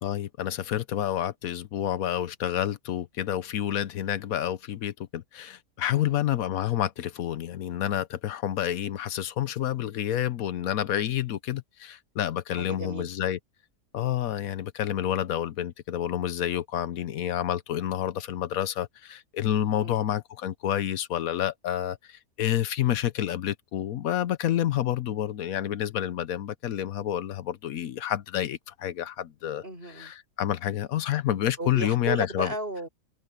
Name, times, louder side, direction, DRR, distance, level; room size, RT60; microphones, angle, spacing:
voice 1, 0.0-13.4 13.9-29.6 30.0-32.5, left 11 dB, 80° left, 1.2 m, -29 dB
voice 2, 12.6-13.1 19.8-20.1 29.6-30.1 31.6-32.9, right 1 dB, 40° right, 6.7 m, -34 dB
omnidirectional pair, 1.5 m